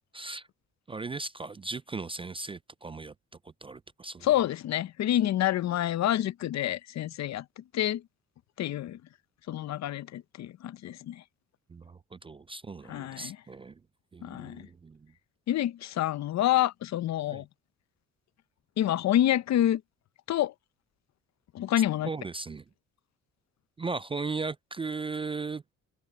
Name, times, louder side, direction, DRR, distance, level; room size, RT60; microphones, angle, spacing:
voice 1, 0.1-0.5 0.9-3.1 3.4-4.3 11.7-13.8 14.1-15.1 17.3-17.4 22.0-22.6 23.8-25.6, right 4 dB, 20° right, 0.3 m, -37 dB
voice 2, 4.2-8.0 8.6-9.0 9.5-11.2 12.9-13.4 14.2-14.7 15.5-17.5 18.8-19.8 20.3-20.5 21.5-22.1, left 12 dB, 65° left, 0.7 m, -28 dB
cardioid pair, 90°, 30 cm